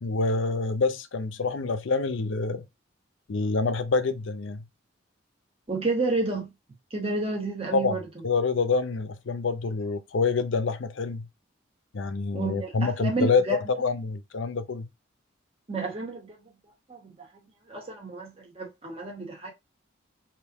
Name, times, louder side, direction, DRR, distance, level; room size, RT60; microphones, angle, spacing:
voice 1, 0.0-2.6 3.3-4.6 7.7-8.0 8.2-11.3 11.9-13.4 13.8-14.9, left 4 dB, 65° left, 0.5 m, -26 dB
voice 2, 5.7-6.5 6.9-8.0 12.3-13.6 15.7-16.4 16.9-17.3 17.7-19.5, right 2 dB, 30° right, 1.2 m, -30 dB
3.5 x 2.7 x 4.0 m
head